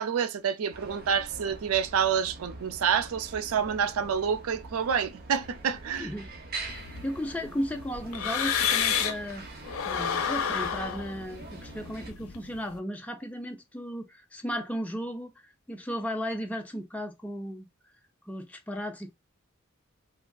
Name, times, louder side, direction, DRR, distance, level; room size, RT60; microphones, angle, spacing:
voice 1, 0.0-6.1, right 7 dB, 90° right, 0.4 m, -28 dB
sound 1, 0.7-12.1, right 2 dB, 45° right, 0.7 m, -44 dB
voice 2, 6.0-6.3 6.7-9.5 9.8-15.3 15.7-17.7 18.3-19.1, equal, 5° left, 0.4 m, -35 dB
sound 2, 6.7-9.3 9.6-12.7, left 7 dB, 85° left, 0.5 m, -31 dB
3.4 x 2.3 x 2.3 m
head